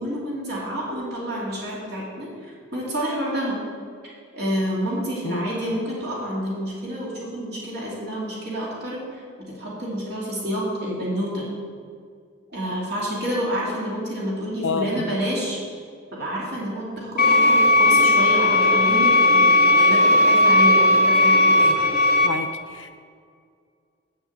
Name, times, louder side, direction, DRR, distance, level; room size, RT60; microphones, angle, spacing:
voice 1, 0.0-3.6 4.4-9.2 9.6-11.5 12.5-15.6 16.1-21.6, equal, 55° right, -5 dB, 2.7 m, -28 dB
voice 2, 14.6-15.1 21.7-21.8 22.2-23.0, left 4 dB, 70° left, 8 dB, 0.6 m, -28 dB
sound 1, 17.2-22.3, left 1 dB, 50° left, 1.1 m, -16 dB
8.5 x 7.7 x 8.0 m, 2.1 s
head